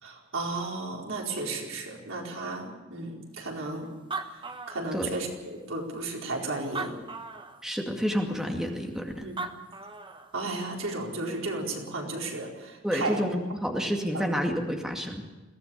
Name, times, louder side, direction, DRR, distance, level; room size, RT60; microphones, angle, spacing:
voice 1, 0.0-3.9 4.7-7.0 9.2-9.4 10.3-13.2 13.8-14.3, right 2 dB, 75° right, 0 dB, 4.6 m, -34 dB
Animal, 3.7-3.8 3.9-5.4 6.0-6.1 6.6-7.6 9.1-9.2 9.4-10.3, right 4 dB, 25° right, 1.2 m, -37 dB
voice 2, 7.6-9.2 12.8-15.2, equal, 5° right, 2 dB, 2.2 m, -29 dB
22.0 x 17.0 x 7.2 m, 1.2 s
head